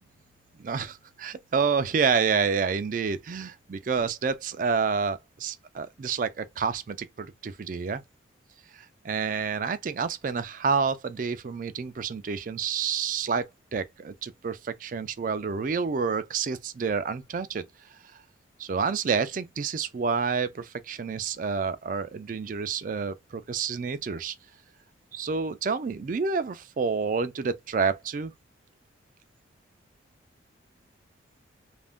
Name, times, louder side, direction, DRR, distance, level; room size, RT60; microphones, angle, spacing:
voice 1, 0.6-8.0 8.7-17.6 18.6-24.3 25.1-28.3, right 5 dB, 45° right, 0.3 m, -29 dB
2.5 x 2.1 x 3.5 m
head